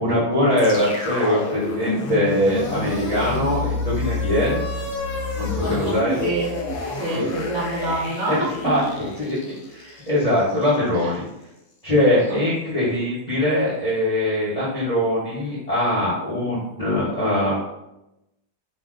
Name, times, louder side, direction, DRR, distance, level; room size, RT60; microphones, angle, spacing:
voice 1, 0.0-4.6 5.4-6.2 7.1-7.3 8.3-9.4 9.7-11.2 11.8-17.5, left 1 dB, 40° left, -9 dB, 0.5 m, -22 dB
sound 1, 0.6-10.8, left 2 dB, 80° left, 1.2 m, -29 dB
voice 2, 5.4-6.5 6.9-8.5 10.9-11.1 12.1-12.4, right 2 dB, 55° right, -3 dB, 1.0 m, -27 dB
2.8 x 2.0 x 3.6 m, 0.89 s
omnidirectional pair, 1.7 m